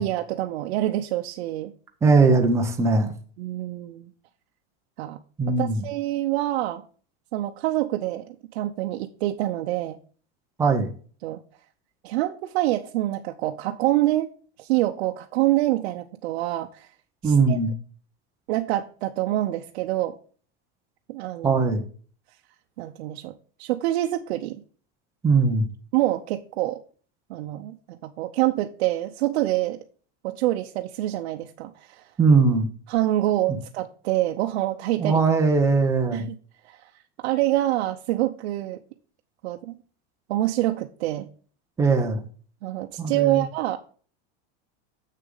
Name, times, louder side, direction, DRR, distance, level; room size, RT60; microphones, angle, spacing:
voice 1, 0.0-1.7 3.4-4.1 5.0-5.2 5.6-6.8 7.3-10.0 11.2-11.4 12.0-14.3 14.6-16.9 17.2-17.6 18.5-20.1 21.1-21.7 22.8-24.6 25.9-26.8 27.3-29.8 30.2-32.1 32.9-35.2 36.1-36.3 36.6-38.8 39.4-39.7 40.3-41.3 42.6-43.8, right 15 dB, 80° right, 4 dB, 0.7 m, -26 dB
voice 2, 2.0-3.1 5.4-5.8 10.6-10.9 17.2-17.7 21.4-21.8 25.2-25.7 32.2-32.7 35.0-36.2 41.8-42.2 43.0-43.4, right 4 dB, 10° right, 2 dB, 0.8 m, -20 dB
7.5 x 6.6 x 3.9 m, 0.43 s
supercardioid pair, 170°, 32 cm